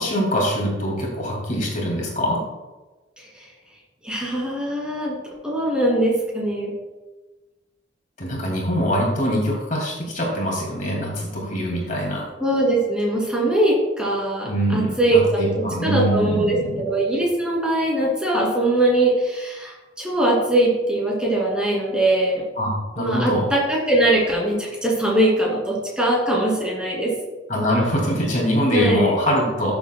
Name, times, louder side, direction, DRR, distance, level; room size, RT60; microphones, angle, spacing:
voice 1, 0.0-2.4 8.2-12.2 14.4-16.8 22.6-23.4 27.5-29.8, equal, 45° left, -2 dB, 2.4 m, -23 dB
voice 2, 4.0-5.1 5.4-6.7 12.4-22.4 23.0-27.1 28.7-29.1, right 1 dB, 5° right, -4 dB, 2.6 m, -21 dB
13.5 x 7.2 x 2.3 m, 1.2 s
head